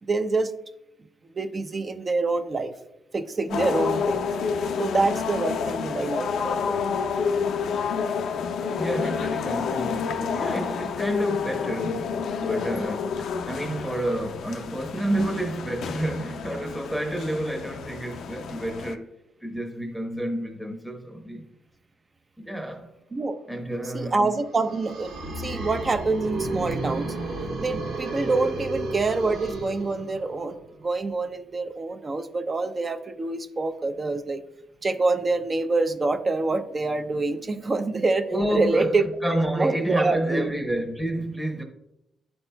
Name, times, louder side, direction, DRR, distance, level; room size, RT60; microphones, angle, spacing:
voice 1, 0.0-0.5 1.3-2.7 3.1-4.3 4.8-6.9 23.1-23.3 23.9-27.1 27.6-34.4 34.8-38.3 38.5-39.0 39.6-40.5, right 3 dB, 30° right, 0.5 m, -26 dB
sound 1, 3.5-18.9, left 6 dB, 70° left, 0.4 m, -29 dB
voice 2, 8.8-19.1 19.4-21.5 22.4-22.9 23.5-24.2 38.3-41.6, right 1 dB, ahead, 0.9 m, -29 dB
sound 2, 24.5-30.4, right 2 dB, 80° right, 1.4 m, -32 dB
10.5 x 4.2 x 2.2 m
cardioid pair, 90°, 0 cm